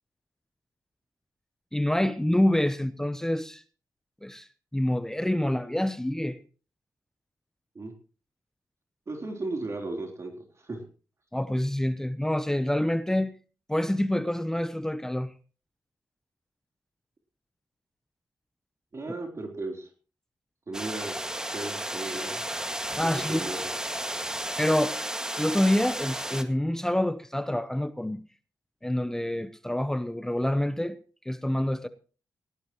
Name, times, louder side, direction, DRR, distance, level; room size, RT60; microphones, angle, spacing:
voice 1, 1.7-3.6 4.2-4.5 4.7-6.4 11.3-13.3 13.7-15.3 23.0-23.5 24.6-25.0 25.4-28.2 28.8-31.0 31.3-31.9, left 1 dB, 5° left, 0.8 m, -27 dB
voice 2, 9.1-10.3 10.6-10.8 18.9-19.9 20.7-21.2 21.5-22.4 23.3-23.6, right 2 dB, 40° right, 3.7 m, -35 dB
sound 1, 20.7-26.4, right 1 dB, 10° right, 1.9 m, -33 dB
18.5 x 17.5 x 3.1 m
cardioid pair, 90°, 7 cm